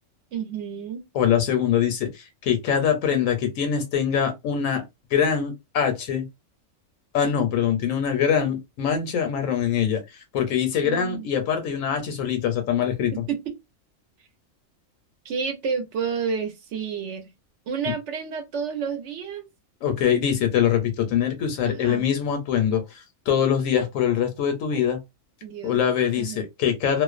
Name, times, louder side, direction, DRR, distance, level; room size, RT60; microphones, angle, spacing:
voice 1, 0.3-1.0 10.8-11.3 13.1-13.4 15.2-17.2 17.7-19.5 21.6-22.0 25.4-25.8 26.1-26.5, right 6 dB, 65° right, 0.9 m, -30 dB
voice 2, 1.1-4.8 5.1-6.2 7.1-13.2 19.8-25.0 25.6-27.0, left 8 dB, 75° left, 1.0 m, -23 dB
2.5 x 2.1 x 2.4 m
omnidirectional pair, 1.4 m